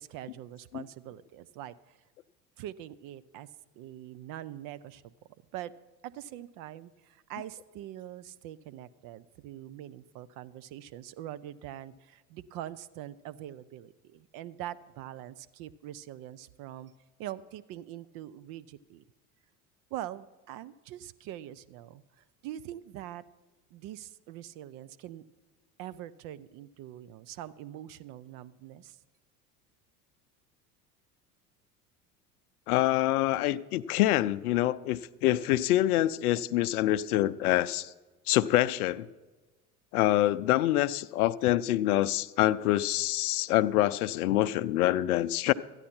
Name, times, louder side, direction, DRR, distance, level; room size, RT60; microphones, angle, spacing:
voice 1, 0.0-2.0 2.6-3.5 3.7-5.1 5.5-5.7 6.0-16.9 17.2-19.0 19.9-23.2 23.7-25.2 25.8-29.0, right 12 dB, 50° right, 15 dB, 0.6 m, -43 dB
voice 2, 32.7-37.9 38.3-39.1 39.9-45.5, left 14 dB, 75° left, 15 dB, 0.6 m, -26 dB
13.0 x 9.8 x 4.4 m, 1.3 s
hypercardioid pair, 75°, 45 cm